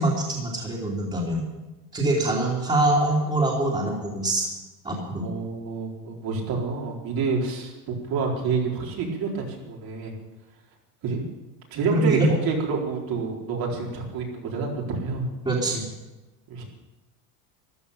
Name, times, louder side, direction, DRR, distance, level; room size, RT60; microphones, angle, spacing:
voice 1, 0.0-1.4 1.9-4.5 4.8-5.2 11.9-12.3 15.4-15.9, right 2 dB, 15° right, -6 dB, 3.2 m, -24 dB
voice 2, 5.2-10.1 11.0-11.2 11.7-15.3 16.5-16.6, right 4 dB, 55° right, -1 dB, 4.4 m, -28 dB
15.0 x 11.5 x 7.0 m, 1.1 s
supercardioid pair, 120°, 43 cm